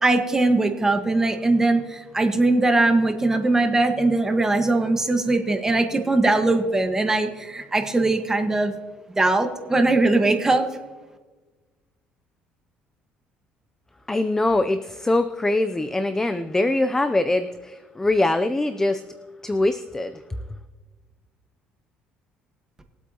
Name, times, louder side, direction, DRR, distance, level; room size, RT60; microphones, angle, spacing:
voice 1, 0.0-8.7 9.2-10.7, right 2 dB, 15° right, 5 dB, 1.5 m, -20 dB
voice 2, 14.1-19.0 19.4-20.2, left 2 dB, 15° left, 11 dB, 0.6 m, -23 dB
21.0 x 8.2 x 3.0 m, 1.3 s
cardioid pair, 100°, 3 cm